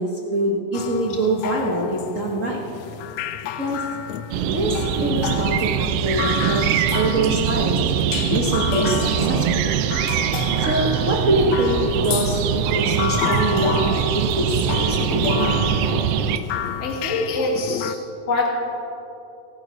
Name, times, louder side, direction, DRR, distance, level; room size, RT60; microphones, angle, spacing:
voice 1, 0.0-2.6 3.6-3.9 4.5-9.7 10.6-15.6, right 1 dB, 50° right, -2 dB, 0.9 m, -24 dB
sound 1, 0.7-17.9, left 11 dB, 80° left, 1.6 m, -30 dB
sound 2, 4.3-16.4, right 9 dB, 80° right, 1.4 m, -22 dB
voice 2, 16.8-18.0 18.3-18.5, left 2 dB, 25° left, -1 dB, 2.1 m, -24 dB
25.5 x 11.0 x 4.0 m, 2.8 s
omnidirectional pair, 3.4 m